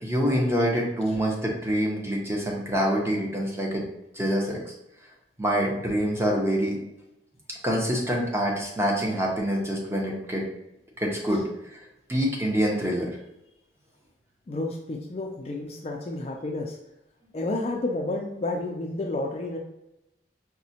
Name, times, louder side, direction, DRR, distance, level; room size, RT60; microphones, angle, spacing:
voice 1, 0.0-3.8 4.1-4.7 5.4-6.8 7.6-10.4 11.0-11.4 12.1-13.1, equal, 15° right, -2 dB, 0.7 m, -26 dB
voice 2, 14.5-16.8 17.3-19.6, left 2 dB, 35° left, 2 dB, 0.3 m, -31 dB
4.9 x 2.1 x 2.8 m, 0.89 s
head